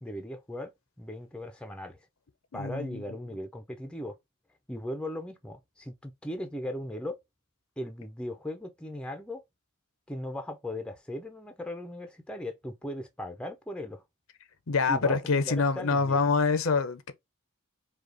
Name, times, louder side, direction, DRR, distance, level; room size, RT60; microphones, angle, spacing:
voice 1, 0.0-2.0 2.5-4.2 4.7-7.2 7.8-9.4 10.1-14.0 14.9-16.2, left 1 dB, 5° left, 0.6 m, -38 dB
voice 2, 2.5-3.0 14.7-17.1, left 4 dB, 70° left, 0.7 m, -26 dB
5.0 x 2.4 x 4.0 m
head